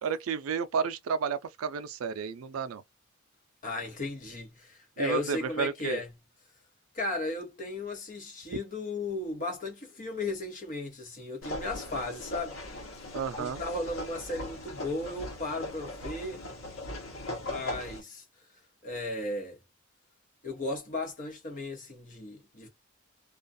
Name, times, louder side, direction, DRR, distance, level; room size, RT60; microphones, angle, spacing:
voice 1, 0.0-2.8 5.0-6.0 13.1-13.6, right 6 dB, 85° right, 0.4 m, -32 dB
voice 2, 3.6-6.1 6.9-12.6 13.4-16.4 17.4-18.2 18.8-19.6 20.4-22.7, left 2 dB, 40° left, 1.0 m, -35 dB
sound 1, 11.4-18.0, left 1 dB, 80° left, 1.0 m, -39 dB
2.4 x 2.2 x 2.5 m
head